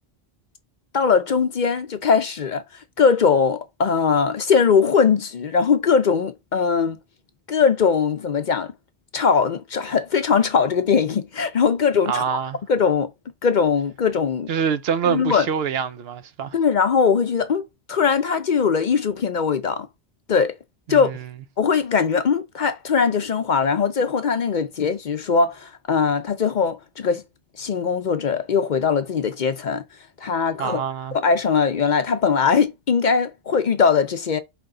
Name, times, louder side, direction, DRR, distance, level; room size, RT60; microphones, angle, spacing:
voice 1, 0.9-7.0 7.5-8.7 9.1-12.2 12.7-13.1 13.4-14.5 15.0-15.5 16.5-19.9 20.3-20.6 20.9-21.1 21.6-27.2 27.6-29.8 30.2-30.8 31.1-34.4, left 6 dB, 55° left, 0.7 m, -20 dB
voice 2, 12.1-12.6 14.5-16.6 20.9-21.2 30.6-31.2, right 7 dB, 75° right, 0.9 m, -25 dB
7.9 x 3.3 x 3.8 m
omnidirectional pair, 1.1 m